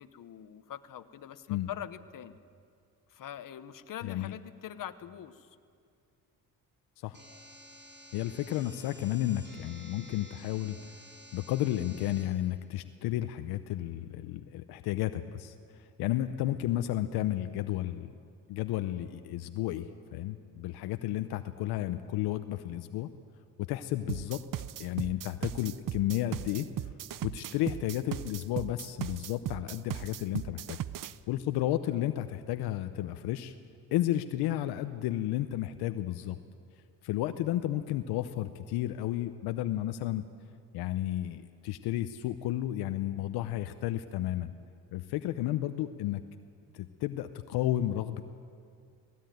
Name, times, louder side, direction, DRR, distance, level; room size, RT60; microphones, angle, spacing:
voice 1, 0.0-2.4 3.1-5.5, left 10 dB, 60° left, 12 dB, 1.1 m, -43 dB
voice 2, 4.0-4.4 7.0-7.2 8.1-10.8 11.3-15.5 16.0-18.1 18.5-19.9 20.1-23.1 23.6-24.4 24.8-26.7 27.2-30.8 31.3-33.5 33.9-36.4 37.0-40.3 40.7-44.5 44.9-46.2 46.7-48.2, left 14 dB, 85° left, 10 dB, 0.8 m, -32 dB
sound 1, 7.1-12.2, equal, 30° right, 6.7 m, -52 dB
sound 2, 24.1-31.1, right 12 dB, 60° right, 0.7 m, -37 dB
18.5 x 17.5 x 9.3 m, 2.3 s
supercardioid pair, 75°, 37 cm